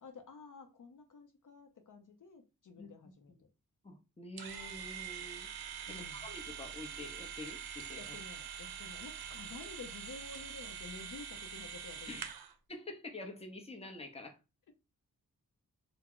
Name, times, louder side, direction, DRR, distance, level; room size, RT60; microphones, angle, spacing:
voice 1, 0.0-3.3 5.9-6.3 7.9-12.3, left 4 dB, 55° left, 0.5 m, -51 dB
voice 2, 3.8-5.5 5.9-8.0 12.1-12.3 12.7-14.4, left 2 dB, 15° left, 0.7 m, -47 dB
sound 1, 4.4-12.5, right 8 dB, 80° right, 0.5 m, -44 dB
2.1 x 2.0 x 3.6 m
cardioid pair, 55°, 37 cm